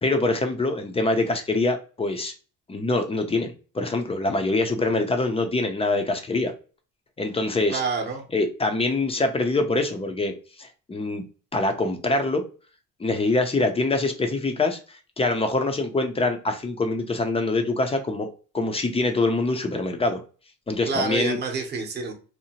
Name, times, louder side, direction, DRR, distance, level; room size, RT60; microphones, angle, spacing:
voice 1, 0.0-2.3 2.7-6.5 7.2-7.8 8.3-10.3 10.6-11.2 11.5-12.4 13.0-14.8 15.2-18.3 18.5-20.2 20.7-21.4, left 2 dB, 15° left, 5 dB, 0.4 m, -24 dB
voice 2, 7.7-8.2 20.8-22.1, right 4 dB, 30° right, 3 dB, 0.7 m, -28 dB
2.8 x 2.0 x 2.8 m, 0.36 s
cardioid pair, 120°, 34 cm